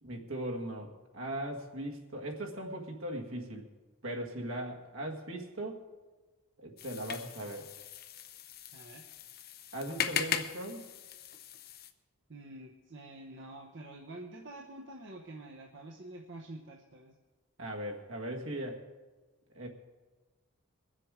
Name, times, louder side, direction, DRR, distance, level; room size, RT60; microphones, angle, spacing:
voice 1, 0.0-3.7 4.0-5.8 6.6-7.7 9.7-10.9 17.6-18.8 19.5-19.7, right 1 dB, 70° right, 1 dB, 1.7 m, -39 dB
sound 1, 6.8-11.9, left 8 dB, 45° left, 0.7 m, -39 dB
voice 2, 8.7-9.0 12.3-17.1, right 1 dB, 55° right, 0 dB, 0.9 m, -47 dB
22.0 x 7.6 x 4.9 m, 1.2 s
head